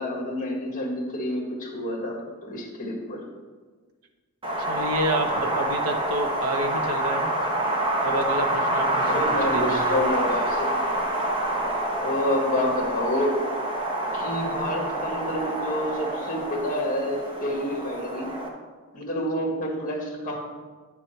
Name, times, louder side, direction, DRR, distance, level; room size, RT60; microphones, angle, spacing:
voice 1, 0.0-3.2 9.1-10.8 12.0-13.4 14.1-18.3 18.9-20.4, left 1 dB, 35° left, -2 dB, 2.0 m, -28 dB
Wind, 4.4-18.5, right 1 dB, 25° right, 1.1 m, -27 dB
voice 2, 4.6-7.3 8.0-9.8, right 1 dB, 75° right, 5 dB, 1.0 m, -29 dB
10.0 x 6.9 x 3.3 m, 1.4 s
head